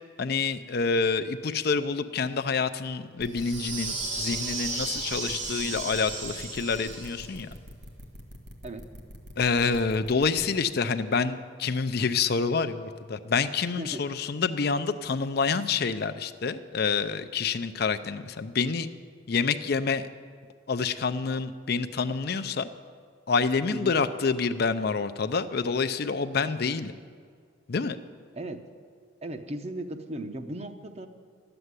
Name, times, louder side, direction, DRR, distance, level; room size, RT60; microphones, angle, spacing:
voice 1, 0.2-7.5 9.4-18.9 19.3-20.1 20.7-22.7 23.3-26.9 27.7-28.0, left 5 dB, 55° left, 10 dB, 0.5 m, -27 dB
sound 1, 3.2-10.5, equal, 55° right, 1.7 m, -45 dB
sound 2, 3.3-7.4, right 3 dB, 75° right, 1.9 m, -34 dB
voice 2, 13.8-14.2 23.7-23.9 28.3-28.6 29.2-31.1, right 1 dB, 35° right, 7 dB, 0.8 m, -37 dB
12.0 x 7.8 x 9.6 m, 2.1 s
head